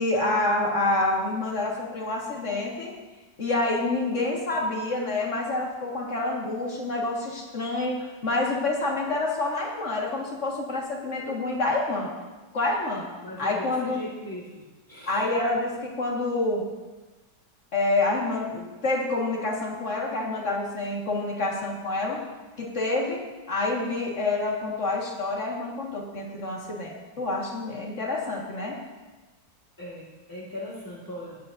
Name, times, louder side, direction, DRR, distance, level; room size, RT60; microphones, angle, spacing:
voice 1, 0.0-2.9 3.4-12.1 12.5-13.1 13.4-14.1 15.0-16.6 17.7-22.3 22.6-23.2 23.5-28.8, left 2 dB, 45° left, -2 dB, 2.0 m, -27 dB
voice 2, 13.2-14.5 14.9-15.2 29.8-31.4, left 1 dB, 10° left, -7 dB, 1.7 m, -39 dB
18.5 x 9.0 x 2.7 m, 1.2 s
omnidirectional pair, 1.9 m